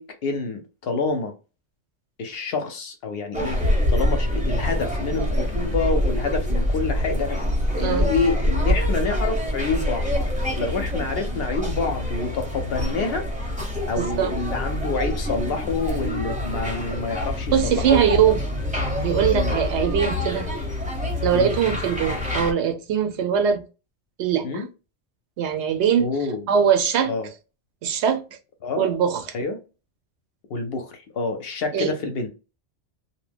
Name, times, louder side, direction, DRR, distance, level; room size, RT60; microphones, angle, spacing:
voice 1, 0.0-1.3 2.2-7.4 7.8-10.3 10.5-13.3 13.9-18.0 19.3-19.6 21.3-21.5 24.4-24.7 26.0-26.5 27.0-27.3 28.6-28.9 29.3-29.6 30.5-32.3, left 3 dB, 60° left, 0.7 m, -27 dB
sound 1, 3.3-22.5, left 1 dB, 10° right, 0.7 m, -25 dB
voice 2, 7.8-8.1 14.0-14.3 17.5-18.4 19.0-20.5 21.2-23.6 24.2-24.6 25.4-26.1 26.5-27.1 27.8-28.2 28.8-29.2 31.7-31.9, right 8 dB, 70° right, 0.8 m, -21 dB
2.7 x 2.1 x 3.3 m
omnidirectional pair, 1.3 m